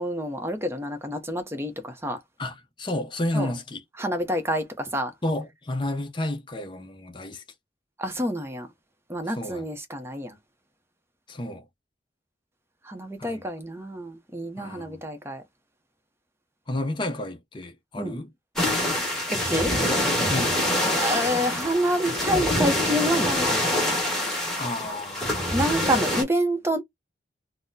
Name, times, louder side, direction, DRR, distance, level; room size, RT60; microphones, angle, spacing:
voice 1, 0.0-2.2 3.3-3.5 4.0-5.1 8.0-8.7 9.1-10.4 12.8-15.4 18.0-18.2 19.3-19.7 21.0-23.6 25.5-26.8, equal, 15° right, 0.6 m, -27 dB
voice 2, 2.4-3.8 5.2-7.4 9.3-9.7 11.3-11.6 13.2-13.4 14.6-15.0 16.7-18.3 20.3-20.6 24.6-25.5, left 1 dB, 25° left, 0.6 m, -31 dB
sound 1, 18.6-26.2, left 1 dB, ahead, 1.2 m, -25 dB
3.9 x 2.0 x 2.6 m
head